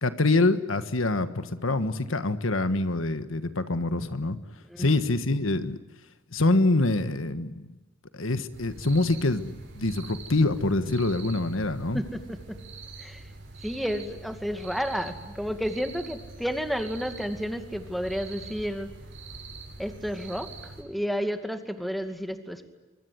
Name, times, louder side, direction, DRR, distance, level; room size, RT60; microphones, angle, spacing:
voice 1, 0.0-4.4 4.8-5.8 6.3-7.6 8.1-12.0, left 2 dB, 80° left, 11 dB, 1.5 m, -25 dB
sound 1, 8.5-20.8, right 3 dB, 60° right, 7.6 m, -44 dB
voice 2, 11.9-12.4 13.0-13.2 13.6-18.9 19.8-22.7, equal, ahead, 7 dB, 2.3 m, -31 dB
25.0 x 24.0 x 9.6 m, 1.2 s
head